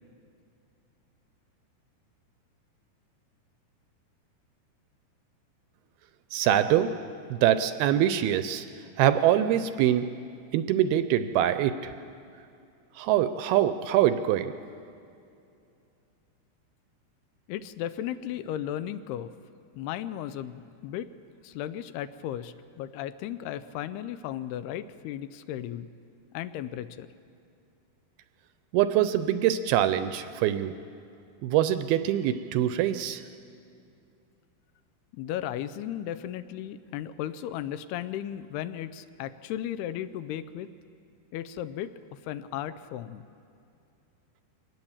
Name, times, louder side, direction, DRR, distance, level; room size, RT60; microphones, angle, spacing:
voice 1, 6.3-6.9 7.3-8.7 9.0-10.1 10.5-11.9 13.0-14.5 28.7-30.7 31.4-33.2, right 11 dB, 80° right, 11 dB, 2.4 m, -24 dB
voice 2, 17.5-19.3 19.8-21.1 21.4-25.9 26.3-27.1 35.1-40.7 41.3-43.2, left 11 dB, 80° left, 13 dB, 2.6 m, -35 dB
24.0 x 19.0 x 7.2 m, 2.6 s
omnidirectional pair, 4.8 m